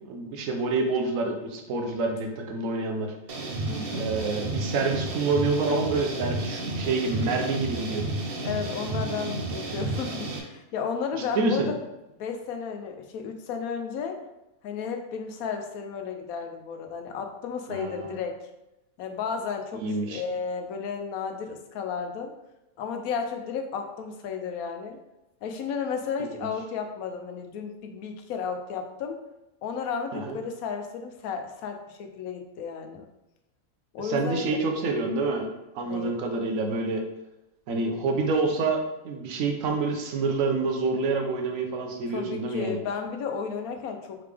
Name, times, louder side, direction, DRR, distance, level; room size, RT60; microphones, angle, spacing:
voice 1, 0.0-3.1 3.9-8.0 11.1-11.7 17.7-18.2 19.8-20.2 30.1-30.4 34.0-35.5 35.7-37.0 37.7-42.8, right 3 dB, 70° right, 3 dB, 1.1 m, -27 dB
sound 1, 3.3-10.4, right 2 dB, 55° right, 0.7 m, -32 dB
voice 2, 3.7-4.1 8.4-11.8 12.2-14.2 14.6-18.3 19.0-22.3 22.8-25.0 25.4-29.2 29.6-33.1 33.9-34.6 35.8-36.2 42.1-44.2, left 6 dB, 90° left, 5 dB, 1.1 m, -33 dB
3.8 x 3.4 x 3.3 m, 0.93 s
omnidirectional pair, 1.5 m